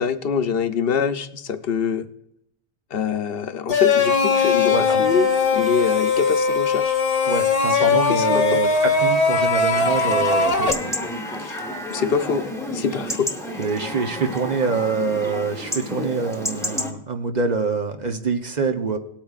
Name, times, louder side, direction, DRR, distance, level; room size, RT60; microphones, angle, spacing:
voice 1, 0.0-2.1 2.9-7.0 8.1-8.6 11.4-11.6 11.9-12.4 12.7-13.3, left 6 dB, 70° left, 9 dB, 0.8 m, -24 dB
sound 1, 3.7-10.7, left 5 dB, 40° left, 0.9 m, -20 dB
voice 2, 4.7-5.0 7.3-10.9 13.6-19.0, right 4 dB, 50° right, 6 dB, 0.8 m, -25 dB
Chatter / Livestock farm animals working animals / Chirp tweet, 9.7-16.9, left 1 dB, 5° left, 1.1 m, -30 dB
18.0 x 8.8 x 2.4 m, 0.80 s
omnidirectional pair, 1.0 m